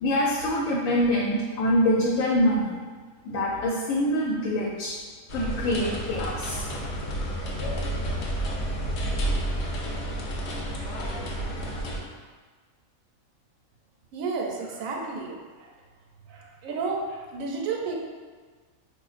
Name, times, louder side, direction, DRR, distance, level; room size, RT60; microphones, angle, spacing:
voice 1, 0.0-2.8 3.2-5.0 5.3-6.6, equal, 85° left, -3 dB, 1.0 m, -25 dB
sound 1, 5.3-12.0, right 1 dB, 65° left, 0.8 m, -30 dB
voice 2, 14.1-15.7 16.3-18.0, right 4 dB, 80° right, 0 dB, 1.0 m, -32 dB
4.5 x 2.4 x 2.4 m, 1.5 s
omnidirectional pair, 1.4 m